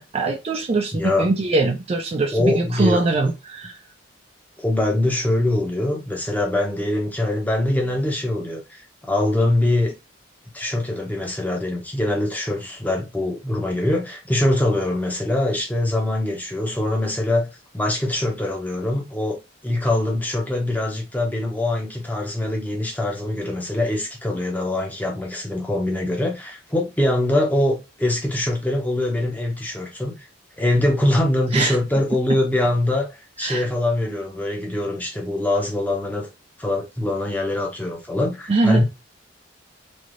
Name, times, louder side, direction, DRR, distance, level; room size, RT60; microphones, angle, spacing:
voice 1, 0.0-3.7 31.5-31.8 33.4-33.6 38.5-38.8, right 3 dB, 30° right, 0.4 m, -22 dB
voice 2, 0.9-1.3 2.3-3.1 4.6-9.9 10.5-17.5 17.7-19.4 19.6-30.1 30.6-33.1 33.4-36.3 36.6-38.8, left 1 dB, 10° left, 0.7 m, -23 dB
3.1 x 2.6 x 2.5 m
head